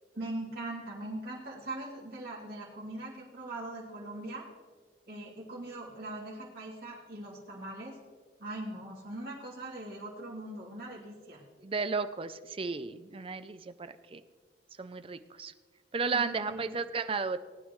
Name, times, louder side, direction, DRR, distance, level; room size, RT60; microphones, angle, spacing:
voice 1, 0.1-4.5 5.1-8.0 8.4-11.4 16.1-16.7, right 1 dB, 60° right, -7 dB, 3.1 m, -41 dB
voice 2, 11.6-14.2 14.8-15.5 15.9-17.4, right 4 dB, 30° right, 11 dB, 0.5 m, -34 dB
19.0 x 9.3 x 3.2 m, 1.5 s
head